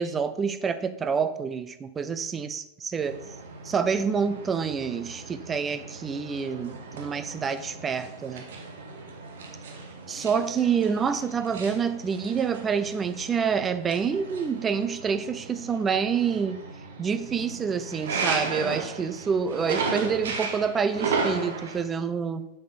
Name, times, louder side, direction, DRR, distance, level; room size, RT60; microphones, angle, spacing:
voice 1, 0.0-3.2 3.6-8.5 10.1-16.6 17.0-22.4, right 6 dB, 20° right, 11 dB, 0.7 m, -27 dB
sound 1, 3.0-21.8, right 4 dB, 60° right, 1.4 m, -35 dB
7.5 x 6.6 x 5.5 m, 0.84 s
figure-of-eight pair, 90°, 0 cm